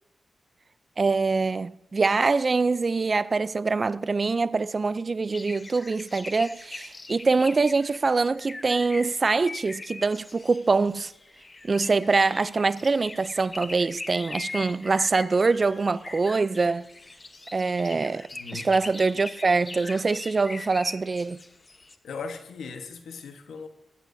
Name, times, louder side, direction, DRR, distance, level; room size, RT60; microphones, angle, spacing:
voice 1, 1.0-11.1 11.6-16.9 17.5-21.4, right 4 dB, 45° right, 0.4 m, -24 dB
sound 1, 5.3-22.0, left 3 dB, 35° left, 1.0 m, -41 dB
voice 2, 18.3-18.6 22.0-23.7, left 5 dB, 90° left, 1.2 m, -38 dB
21.0 x 14.5 x 2.7 m
cardioid pair, 65°, 0 cm